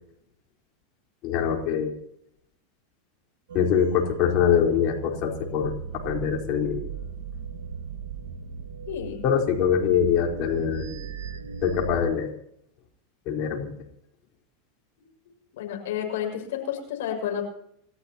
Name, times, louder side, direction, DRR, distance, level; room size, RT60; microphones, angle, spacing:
voice 1, 1.2-2.0 3.5-5.7 6.0-6.8 9.2-10.9 11.6-12.3 13.3-13.7, left 7 dB, 50° left, 1 dB, 4.4 m, -23 dB
sound 1, 3.5-12.0, right 6 dB, 75° right, 1.8 m, -38 dB
voice 2, 8.9-9.2 15.6-17.5, left 9 dB, 70° left, 3 dB, 6.2 m, -30 dB
29.5 x 14.0 x 3.0 m, 0.74 s
hypercardioid pair, 95°, 0 cm